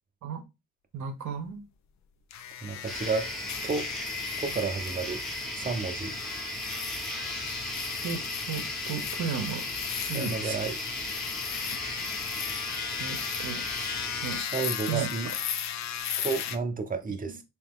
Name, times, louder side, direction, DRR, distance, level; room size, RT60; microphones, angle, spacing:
voice 1, 0.9-1.6 8.0-9.6 10.1-10.6 12.0-12.3 13.0-13.9 14.2-14.4 14.9-15.3 17.2-17.3, right 7 dB, 70° right, 0.9 m, -35 dB
sound 1, 2.3-16.6, left 8 dB, 65° left, 0.6 m, -36 dB
voice 2, 2.6-3.3 3.6-3.9 4.4-5.2 5.6-6.2 10.1-10.7 14.4-15.3 16.2-17.4, right 4 dB, 30° right, 0.8 m, -31 dB
sound 2, 2.9-14.4, equal, ahead, 0.8 m, -37 dB
3.4 x 3.1 x 3.6 m
cardioid pair, 90°, 30 cm